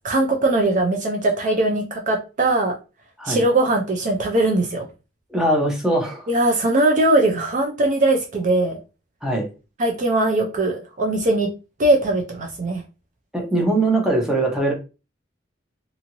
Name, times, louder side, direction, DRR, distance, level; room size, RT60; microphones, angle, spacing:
voice 1, 0.0-2.7 3.2-4.9 6.3-8.8 9.8-11.5 11.8-12.8, right 2 dB, 40° right, 3 dB, 0.5 m, -20 dB
voice 2, 5.3-6.3 9.2-9.5 13.3-14.7, right 2 dB, 5° right, 0 dB, 0.8 m, -21 dB
2.7 x 2.6 x 2.9 m, 0.31 s
head